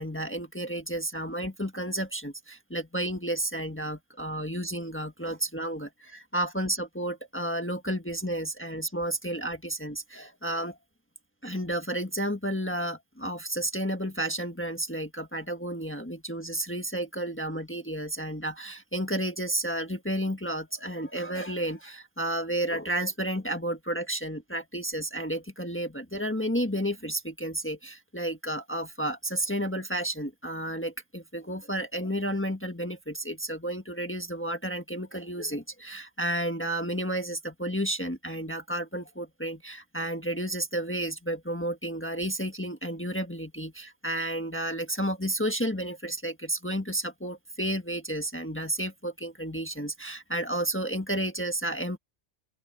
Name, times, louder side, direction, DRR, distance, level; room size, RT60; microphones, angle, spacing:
voice 1, 0.0-10.8 11.4-52.0, right 1 dB, 10° left, 1.4 m, -32 dB
open air
omnidirectional pair, 1.2 m